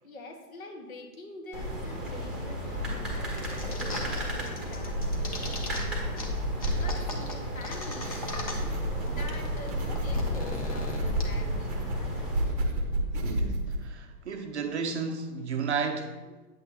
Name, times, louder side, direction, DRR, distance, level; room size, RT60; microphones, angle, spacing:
voice 1, 0.0-6.4 6.7-8.8 9.1-12.2 16.3-16.5, left 2 dB, 55° left, 1.5 m, -45 dB
sound 1, 1.5-12.4, equal, ahead, 1.1 m, -33 dB
sound 2, 3.4-4.2 4.5-5.8 6.2-6.3 6.6-8.8 9.1-9.2 9.3-11.2, left 2 dB, 20° left, 0.6 m, -38 dB
sound 3, 7.7-13.8, right 1 dB, 25° right, 0.9 m, -32 dB
voice 2, 13.1-16.2, right 5 dB, 45° right, 0.7 m, -33 dB
8.8 x 8.2 x 2.8 m
hypercardioid pair, 155°, 50 cm